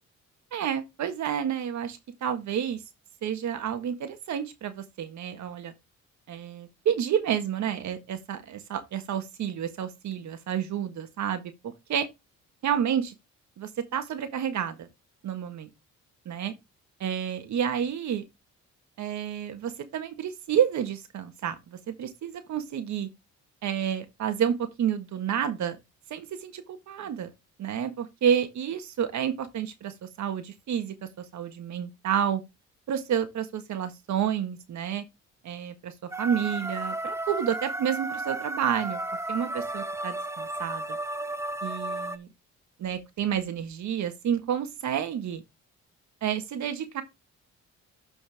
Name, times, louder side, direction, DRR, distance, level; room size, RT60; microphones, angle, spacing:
voice 1, 0.5-2.8 3.2-5.7 6.3-12.1 12.6-13.1 13.6-14.9 15.2-15.7 16.2-16.5 17.0-18.2 19.0-23.1 23.6-25.8 26.1-27.3 27.6-32.4 32.9-35.0 35.4-39.0 39.3-41.0 41.6-42.3 42.8-45.4 46.2-47.0, right 9 dB, 70° right, 1.6 m, -30 dB
sound 1, 36.1-42.2, right 2 dB, 10° right, 0.8 m, -33 dB
12.5 x 4.6 x 3.5 m
cardioid pair, 90°, 30 cm